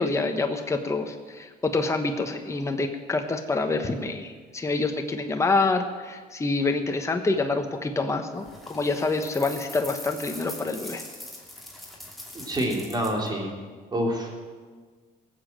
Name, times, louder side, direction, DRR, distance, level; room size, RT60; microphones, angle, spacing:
voice 1, 0.0-11.0, left 3 dB, 15° left, 5 dB, 1.1 m, -27 dB
sound 1, 8.4-13.3, left 1 dB, ahead, 2.9 m, -42 dB
voice 2, 12.3-13.5 13.9-14.3, equal, 25° right, 0 dB, 3.4 m, -27 dB
17.5 x 7.4 x 7.5 m, 1.5 s
cardioid pair, 110°, 17 cm